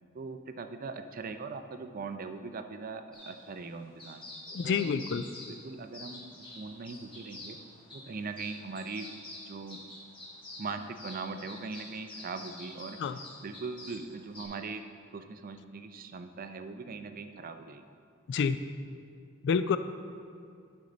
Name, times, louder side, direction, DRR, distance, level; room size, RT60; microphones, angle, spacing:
voice 1, 0.1-4.2 4.6-5.0 5.5-7.6 7.9-9.1 9.5-9.8 10.6-14.8 15.1-17.8, right 4 dB, 45° right, 8 dB, 0.5 m, -40 dB
sound 1, 3.1-14.4, left 1 dB, 25° left, 1.7 m, -48 dB
voice 2, 4.5-5.2 13.0-13.2 18.3-18.6 19.4-19.8, left 6 dB, 60° left, 12 dB, 0.3 m, -28 dB
11.5 x 5.4 x 3.9 m, 2.4 s
head